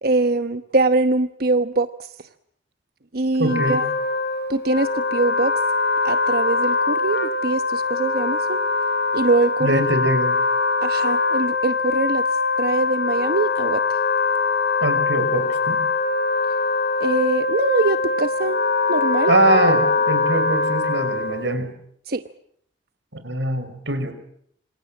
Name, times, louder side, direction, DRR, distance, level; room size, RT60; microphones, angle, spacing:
voice 1, 0.0-2.1 3.1-3.8 4.5-5.5 6.0-8.6 9.1-9.9 10.8-12.3 12.6-13.8 17.0-18.6 18.9-19.3 22.1-22.2, right 2 dB, 55° right, 10 dB, 1.1 m, -22 dB
Wind instrument woodwind instrument, 3.4-21.5, left 3 dB, 65° left, 3.7 m, -22 dB
voice 2, 3.4-3.8 9.6-10.4 14.8-15.8 19.3-21.7 23.1-24.1, right 1 dB, 80° right, 9 dB, 5.7 m, -22 dB
27.5 x 27.0 x 7.6 m, 0.69 s
head